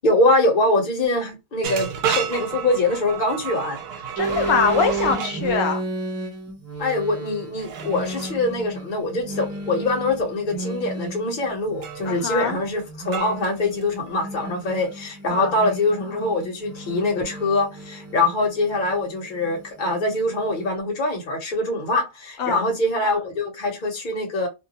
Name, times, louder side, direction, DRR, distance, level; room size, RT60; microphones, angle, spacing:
voice 1, 0.0-3.8 6.8-24.5, left 2 dB, 50° left, 0.9 m, -23 dB
sound 1, 1.6-5.4 7.6-8.4 11.8-12.1 13.1-14.1, right 7 dB, 70° right, 0.8 m, -31 dB
voice 2, 4.1-5.8 12.0-12.6 15.3-15.5 22.4-22.7, left 6 dB, 75° left, 1.0 m, -23 dB
sound 2, 4.2-20.7, right 3 dB, 20° right, 0.5 m, -33 dB
2.2 x 2.2 x 2.7 m
omnidirectional pair, 1.2 m